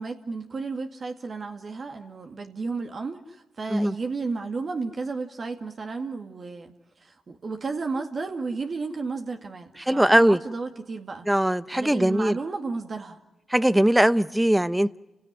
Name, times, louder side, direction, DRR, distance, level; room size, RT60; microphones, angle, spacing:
voice 1, 0.0-6.7 7.0-11.3 11.7-13.2, right 4 dB, 50° right, 4 dB, 2.1 m, -33 dB
voice 2, 9.8-10.4 11.3-12.4 13.5-15.0, right 1 dB, 10° right, 15 dB, 0.9 m, -20 dB
30.0 x 16.5 x 9.7 m, 1.0 s
cardioid pair, 60°, 0 cm